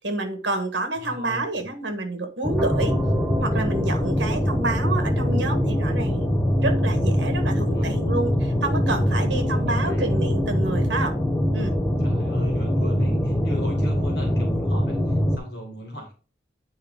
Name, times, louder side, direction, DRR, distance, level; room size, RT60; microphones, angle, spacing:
voice 1, 0.0-3.0 3.4-11.1 11.5-11.7, right 2 dB, 75° right, 1.5 m, -28 dB
voice 2, 1.0-1.6 7.6-8.1 9.2-10.1 12.0-16.1, left 1 dB, 60° left, 1.8 m, -37 dB
sound 1, 2.4-15.4, equal, 15° left, 0.8 m, -23 dB
sound 2, 2.6-5.6, right 1 dB, 5° right, 1.7 m, -34 dB
8.8 x 4.3 x 3.6 m
head